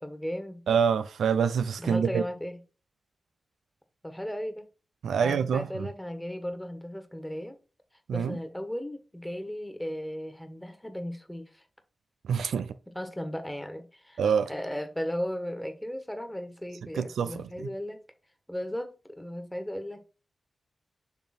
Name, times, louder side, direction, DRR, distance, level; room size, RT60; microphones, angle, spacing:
voice 1, 0.0-0.6 1.8-2.6 4.0-4.6 5.2-7.6 8.1-11.6 12.9-14.2 14.5-18.0 18.5-20.0, equal, 10° left, 1.5 m, -36 dB
voice 2, 0.7-2.2 5.0-5.9 8.1-8.4 12.3-12.7 14.2-14.5 17.0-17.7, right 7 dB, 85° right, 0.4 m, -26 dB
6.5 x 3.3 x 4.4 m
supercardioid pair, 40°, 0 cm